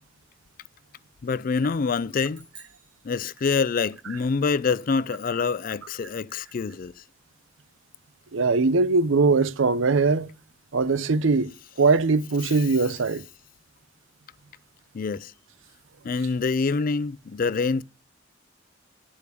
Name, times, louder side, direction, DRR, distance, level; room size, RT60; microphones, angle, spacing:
voice 1, 1.2-2.4 3.0-6.9 14.9-15.3 16.0-17.8, left 4 dB, 45° left, 0.4 m, -26 dB
sound 1, 2.3-4.0, right 3 dB, 25° right, 2.8 m, -52 dB
voice 2, 8.3-10.3 10.7-11.5 11.8-13.2, right 4 dB, 75° right, 0.6 m, -21 dB
10.5 x 5.0 x 6.8 m
head